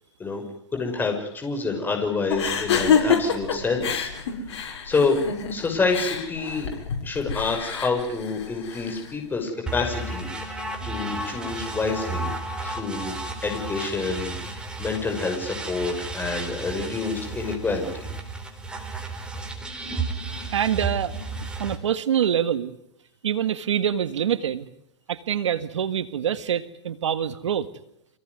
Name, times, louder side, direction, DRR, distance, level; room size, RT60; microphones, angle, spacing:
voice 1, 0.7-4.1 4.5-5.2 5.5-6.7 7.0-12.3 12.6-18.1, left 4 dB, 15° left, 2 dB, 6.0 m, -28 dB
sound 1, 2.3-9.1, left 6 dB, 65° left, 6.9 m, -27 dB
sound 2, 9.7-21.8, right 3 dB, 5° right, 4.1 m, -33 dB
voice 2, 20.5-21.2 21.6-22.8 23.2-24.7 25.1-27.7, right 9 dB, 85° right, 11 dB, 1.7 m, -25 dB
27.5 x 18.0 x 9.6 m, 0.78 s
hypercardioid pair, 135°, 15 cm